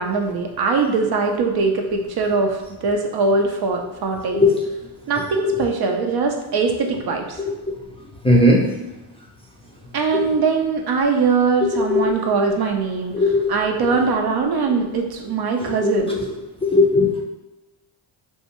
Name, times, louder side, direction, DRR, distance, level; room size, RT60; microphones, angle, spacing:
voice 1, 0.0-4.4 5.1-7.4 9.9-13.1 13.5-16.2, right 4 dB, 50° right, 2 dB, 0.5 m, -21 dB
voice 2, 8.2-8.6 10.1-10.3 11.7-12.2 13.1-13.5 15.6-16.2 16.6-17.2, left 2 dB, 10° left, -3 dB, 0.5 m, -18 dB
2.6 x 2.1 x 2.9 m, 1.0 s
supercardioid pair, 65°, 49 cm